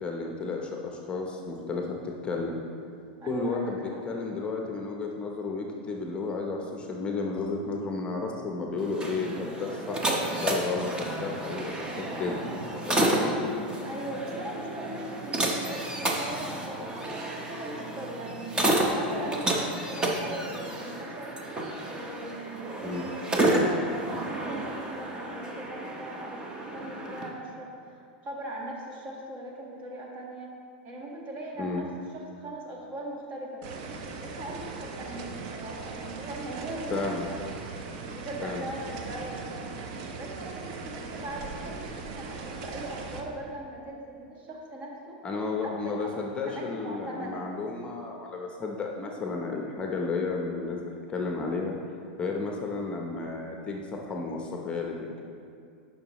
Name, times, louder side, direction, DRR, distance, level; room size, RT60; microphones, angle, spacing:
voice 1, 0.0-2.5 3.3-12.4 12.8-13.3 22.8-23.1 31.6-31.9 36.9-37.2 38.4-38.7 45.2-50.8 51.1-51.8 52.2-55.0, left 3 dB, 20° left, 0 dB, 0.8 m, -32 dB
voice 2, 3.2-3.6 3.9-4.0 13.8-21.3 21.8-30.5 30.8-31.9 32.1-37.5 38.1-39.7 40.2-45.2 45.6-46.1 46.4-47.5, right 1 dB, 40° right, -2 dB, 1.6 m, -40 dB
sound 1, 8.8-27.3, right 1 dB, 15° right, 1.0 m, -30 dB
sound 2, 33.6-43.2, right 4 dB, 60° right, 0.8 m, -39 dB
11.0 x 5.7 x 3.1 m, 2.4 s
hypercardioid pair, 120°, 5 cm